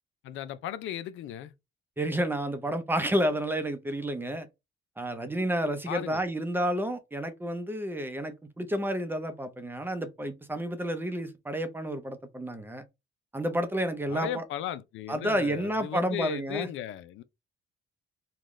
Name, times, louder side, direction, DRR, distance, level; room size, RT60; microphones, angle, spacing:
voice 1, 0.2-1.5 5.9-6.2 14.1-17.2, left 11 dB, 80° left, 0.5 m, -36 dB
voice 2, 2.0-4.5 5.0-12.8 13.3-14.4 15.1-16.7, right 1 dB, 10° right, 0.6 m, -30 dB
3.8 x 2.3 x 3.1 m
cardioid pair, 120°, 20 cm